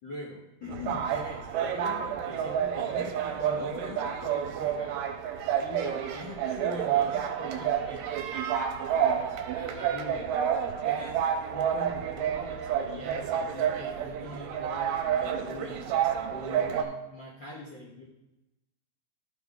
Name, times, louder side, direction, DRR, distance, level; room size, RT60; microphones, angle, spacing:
voice 1, 0.0-5.0 5.6-10.3 10.6-11.2 11.5-15.9 16.3-18.0, left 2 dB, 60° left, -5 dB, 1.2 m, -42 dB
sound 1, 0.7-16.8, right 9 dB, 85° right, 2.3 m, -29 dB
12.0 x 4.5 x 3.7 m, 0.94 s
omnidirectional pair, 4.0 m